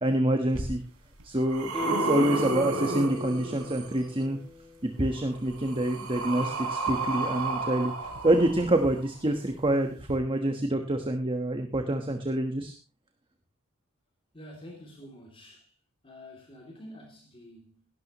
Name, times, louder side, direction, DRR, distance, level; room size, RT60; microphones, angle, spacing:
voice 1, 0.0-0.8 1.2-4.4 4.8-7.9 8.2-12.7, right 1 dB, 25° right, 1.3 m, -27 dB
sound 1, 0.5-0.6 1.2-4.0 5.2-9.1 10.0-10.1, right 2 dB, 80° right, 3.6 m, -32 dB
Guitar, 1.7-5.0 5.4-5.5, left 3 dB, 5° left, 1.9 m, -39 dB
voice 2, 14.3-15.7 16.0-17.9, equal, 25° left, 3.0 m, -48 dB
17.5 x 12.0 x 3.1 m
head